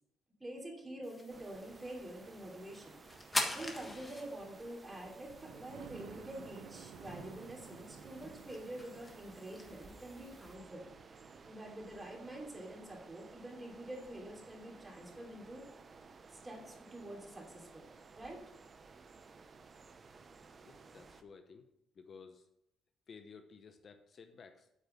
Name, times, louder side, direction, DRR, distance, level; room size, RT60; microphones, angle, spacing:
voice 1, 0.4-3.0 3.5-10.8 11.4-15.6 16.3-17.9 18.1-18.4, right 1 dB, 20° right, -1 dB, 2.9 m, -47 dB
sound 1, 1.0-10.5, left 1 dB, 15° left, 1.4 m, -45 dB
sound 2, 1.3-21.2, right 4 dB, 40° right, 0.8 m, -57 dB
Thunder, 5.3-15.0 15.6-15.7 16.1-16.2 16.4-16.5, right 8 dB, 80° right, 0.6 m, -56 dB
voice 2, 20.6-21.7 22.0-22.5 23.1-24.7, left 5 dB, 50° left, 7 dB, 0.8 m, -55 dB
8.4 x 4.7 x 6.9 m, 0.80 s
cardioid pair, 90°, 0 cm